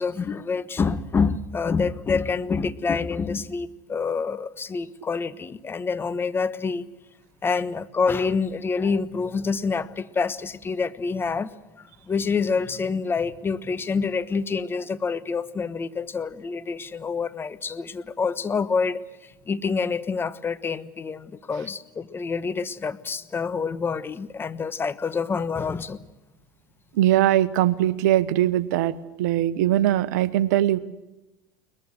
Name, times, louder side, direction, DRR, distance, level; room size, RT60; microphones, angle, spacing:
voice 1, 0.0-6.9 7.4-11.5 12.1-26.0, left 5 dB, 20° left, 14 dB, 1.2 m, -27 dB
voice 2, 26.9-28.9 29.2-30.8, right 13 dB, 70° right, 16 dB, 1.1 m, -21 dB
22.0 x 20.5 x 7.7 m, 1.0 s
hypercardioid pair, 90°, 10 cm